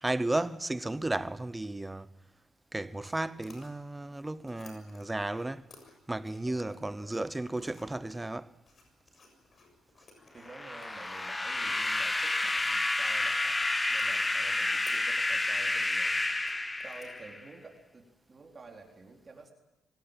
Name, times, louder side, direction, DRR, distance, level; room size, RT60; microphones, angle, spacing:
voice 1, 0.0-2.1 2.7-5.7 6.1-8.5, right 2 dB, 15° right, 0.8 m, -34 dB
sound 1, 3.0-17.2, left 3 dB, 45° left, 7.0 m, -59 dB
voice 2, 6.5-7.1 10.3-13.6 13.9-18.0 18.3-19.5, right 3 dB, 30° right, 4.2 m, -51 dB
sound 2, 10.5-17.5, left 2 dB, 15° left, 1.2 m, -30 dB
24.5 x 17.5 x 9.1 m
cardioid pair, 90°, 0 cm